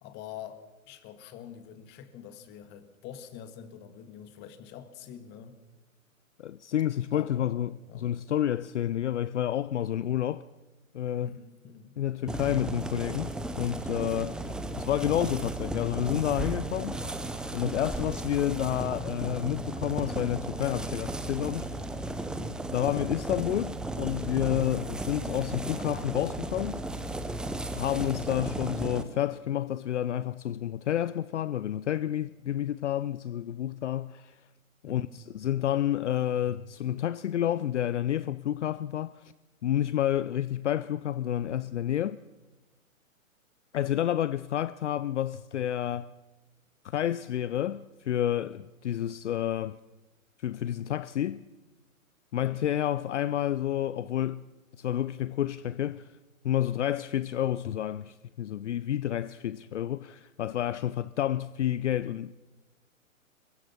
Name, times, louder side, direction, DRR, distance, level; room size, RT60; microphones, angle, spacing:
voice 1, 0.0-5.6 7.1-8.1 11.2-11.9 34.8-35.2 52.4-52.6, left 9 dB, 25° left, 1.8 m, -46 dB
voice 2, 6.4-10.4 10.9-11.4 12.0-17.0 17.5-21.8 22.4-26.8 27.7-34.4 34.8-39.3 39.6-42.2 43.7-46.1 46.8-49.8 50.4-51.5 52.3-54.4 54.8-56.1 56.4-62.3, left 11 dB, 60° left, 0.7 m, -30 dB
sound 1, 12.3-29.0, right 2 dB, ahead, 0.7 m, -35 dB
23.0 x 20.5 x 5.9 m
figure-of-eight pair, 125°, 41 cm